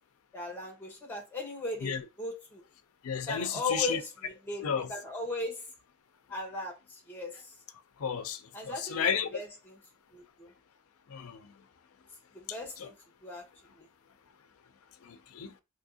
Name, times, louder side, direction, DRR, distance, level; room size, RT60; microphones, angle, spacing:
voice 1, 0.3-2.6 3.1-5.7 6.3-7.5 8.5-9.8 10.1-10.5 12.3-12.9 13.2-13.4 13.8-13.9, left 2 dB, 10° left, 1.0 m, -38 dB
voice 2, 3.0-4.0 4.6-4.9 8.0-9.4 11.1-11.5 12.8-12.9 15.0-15.5, left 7 dB, 85° left, 0.4 m, -33 dB
3.4 x 2.8 x 2.7 m
head